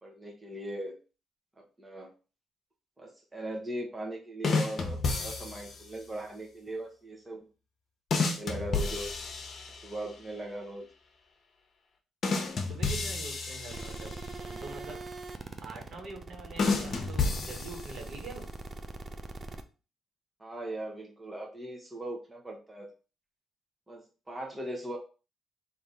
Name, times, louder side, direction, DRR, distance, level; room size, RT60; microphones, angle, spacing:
voice 1, 0.0-0.9 1.8-2.1 3.0-7.5 8.2-9.1 9.7-10.9 20.4-22.9 23.9-25.0, right 1 dB, 15° right, 0 dB, 1.1 m, -39 dB
sound 1, 4.4-5.9 8.1-10.1 12.2-14.4 16.6-18.2, left 4 dB, 50° left, 0.9 m, -31 dB
voice 2, 12.6-14.1 14.4-15.0 15.6-18.5, right 3 dB, 70° right, 0 dB, 1.6 m, -44 dB
sound 2, 13.7-19.6, right 3 dB, 35° right, 0.5 m, -42 dB
3.4 x 2.8 x 4.0 m, 0.33 s
cardioid pair, 90°, 0 cm